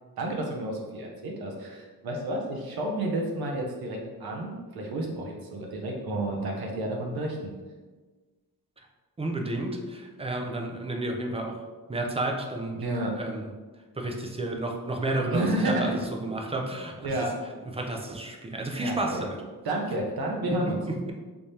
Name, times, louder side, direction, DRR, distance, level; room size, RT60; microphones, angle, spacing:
voice 1, 0.2-7.5 12.8-13.2 15.3-16.0 17.0-17.4 18.7-19.3 19.6-20.8, right 1 dB, 85° right, 0 dB, 0.7 m, -30 dB
voice 2, 9.2-11.6 11.9-12.8 13.2-13.4 14.0-17.1 17.8-19.3 20.5-20.6 20.8-21.1, right 2 dB, 15° right, 1 dB, 0.4 m, -31 dB
3.5 x 3.2 x 2.7 m, 1.3 s
wide cardioid pair, 140°, 36 cm